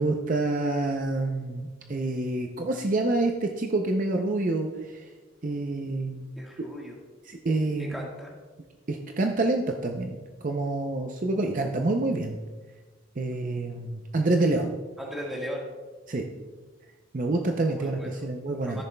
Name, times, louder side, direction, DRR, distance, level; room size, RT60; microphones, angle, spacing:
voice 1, 0.0-5.1 5.4-6.3 7.2-7.9 8.9-12.4 13.2-14.7 16.1-16.2 17.1-18.8, right 2 dB, 40° right, 3 dB, 0.5 m, -27 dB
voice 2, 6.4-7.0 7.8-8.3 15.0-15.7 17.7-18.2 18.6-18.8, equal, ahead, -3 dB, 1.5 m, -37 dB
13.5 x 6.9 x 2.2 m, 1.3 s
head